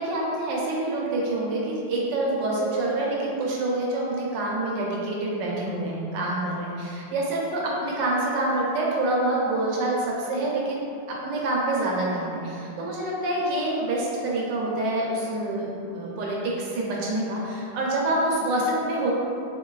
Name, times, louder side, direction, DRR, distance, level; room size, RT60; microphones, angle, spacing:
voice 1, 0.0-19.1, right 2 dB, 75° right, -3 dB, 1.3 m, -27 dB
4.6 x 2.5 x 2.3 m, 2.6 s
omnidirectional pair, 2.0 m